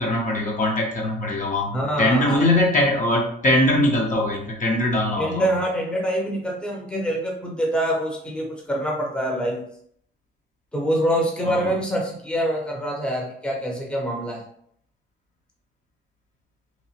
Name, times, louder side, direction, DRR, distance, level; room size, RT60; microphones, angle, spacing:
voice 1, 0.0-5.5 11.4-11.7, left 1 dB, 40° left, -1 dB, 0.7 m, -21 dB
voice 2, 1.7-2.4 5.2-9.7 10.7-14.4, equal, 5° left, -1 dB, 0.7 m, -25 dB
2.9 x 2.0 x 2.8 m, 0.66 s
cardioid pair, 90°, 20 cm